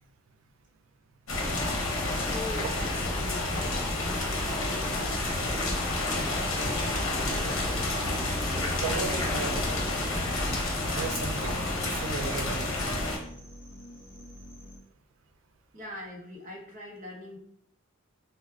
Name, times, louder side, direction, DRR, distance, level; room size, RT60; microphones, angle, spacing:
sound 1, 1.3-13.2, left 2 dB, 80° left, 0.8 m, -29 dB
voice 1, 2.3-5.2 15.7-17.4, left 2 dB, 40° right, -2 dB, 0.8 m, -42 dB
sound 2, 6.8-14.8, equal, 25° left, 1.0 m, -48 dB
voice 2, 8.8-9.7 10.9-12.8, right 4 dB, 70° right, 6 dB, 0.3 m, -35 dB
4.3 x 2.1 x 2.3 m, 0.74 s
head